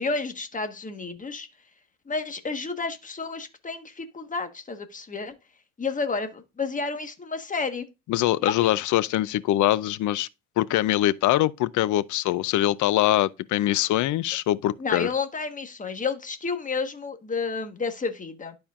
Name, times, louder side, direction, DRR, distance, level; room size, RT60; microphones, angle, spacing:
voice 1, 0.0-1.5 2.1-5.3 5.8-7.9 8.4-8.7 14.8-18.6, left 4 dB, 25° left, 1.3 m, -31 dB
voice 2, 8.1-10.3 10.6-15.1, left 14 dB, 80° left, 0.5 m, -23 dB
12.0 x 4.4 x 2.4 m
cardioid pair, 90°, 30 cm